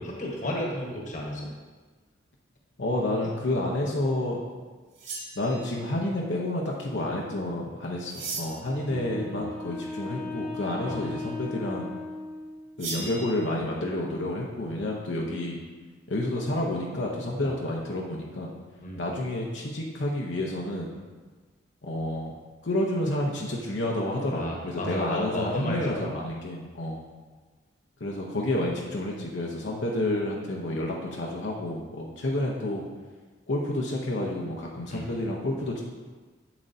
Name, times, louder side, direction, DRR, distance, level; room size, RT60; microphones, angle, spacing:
voice 1, 0.0-1.5 8.9-9.5 10.9-11.0 18.8-19.0 24.3-26.1 34.9-35.1, left 1 dB, 40° left, -2 dB, 1.2 m, -33 dB
voice 2, 2.8-4.4 5.3-11.9 12.8-15.6 16.1-18.5 19.0-20.9 21.8-22.3 22.6-27.0 28.0-32.8 33.5-35.8, left 1 dB, 70° left, -2 dB, 0.8 m, -30 dB
sound 1, 4.9-5.9 8.1-8.7 12.8-13.2, right 3 dB, 80° right, 2.4 m, -36 dB
Wind instrument woodwind instrument, 8.6-12.8, left 3 dB, 10° left, 1.2 m, -38 dB
7.8 x 7.3 x 2.7 m, 1.4 s
head